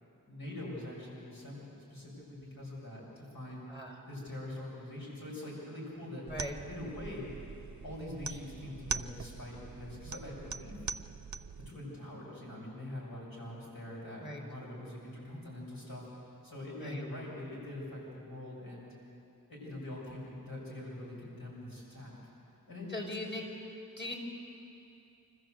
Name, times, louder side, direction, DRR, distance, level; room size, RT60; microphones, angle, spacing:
voice 1, 0.3-3.7 4.1-6.3 6.7-7.3 7.8-10.9 11.7-16.0 16.4-18.9 19.5-22.2 22.7-23.0, left 1 dB, 85° left, -5 dB, 7.4 m, -44 dB
voice 2, 3.7-4.0 6.3-6.5 14.2-14.4 16.8-17.0 22.9-23.5 24.0-24.2, left 1 dB, 30° left, 1 dB, 5.0 m, -40 dB
sound 1, 6.3-11.7, right 5 dB, 55° right, 0.6 m, -42 dB
26.5 x 14.5 x 8.0 m, 2.7 s
wide cardioid pair, 45°, 35 cm